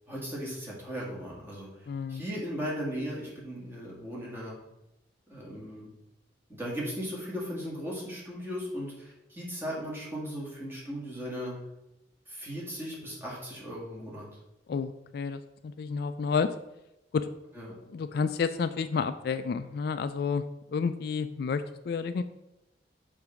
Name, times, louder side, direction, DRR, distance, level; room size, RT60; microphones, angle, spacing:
voice 1, 0.1-1.7 2.1-4.6 5.3-5.9 6.6-11.5 12.3-14.3 17.5-17.7, equal, 15° right, -6 dB, 2.2 m, -37 dB
voice 2, 1.9-2.2 14.7-16.5 17.1-17.3 17.9-20.4 20.7-22.2, left 5 dB, 60° left, 11 dB, 0.3 m, -30 dB
6.8 x 3.5 x 5.8 m, 0.91 s
head